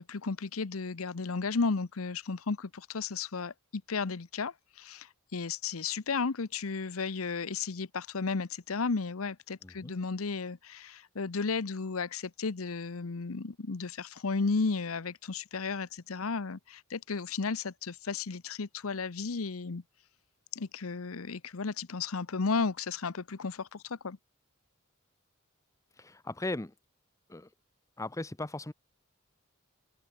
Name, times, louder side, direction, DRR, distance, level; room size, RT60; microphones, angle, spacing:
voice 1, 0.0-19.8 20.5-24.2, left 4 dB, 90° left, 0.8 m, -34 dB
voice 2, 9.6-9.9 25.9-26.7 27.3-27.5 28.0-28.7, left 2 dB, 15° left, 0.7 m, -37 dB
open air
head